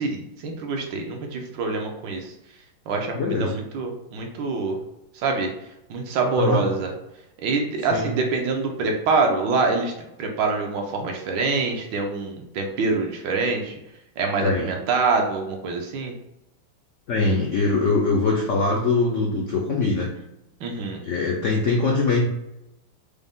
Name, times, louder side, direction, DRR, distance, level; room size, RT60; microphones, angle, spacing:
voice 1, 0.0-2.3 2.9-4.8 5.1-5.5 5.9-6.9 7.4-9.9 10.2-13.7 14.2-16.1 20.6-21.0, right 4 dB, 75° right, 2 dB, 1.4 m, -25 dB
voice 2, 3.2-3.6 6.4-6.6 7.9-8.1 14.4-14.7 17.1-20.1 21.0-22.2, left 3 dB, 70° left, -2 dB, 0.7 m, -22 dB
5.1 x 2.1 x 3.5 m, 0.87 s
omnidirectional pair, 2.1 m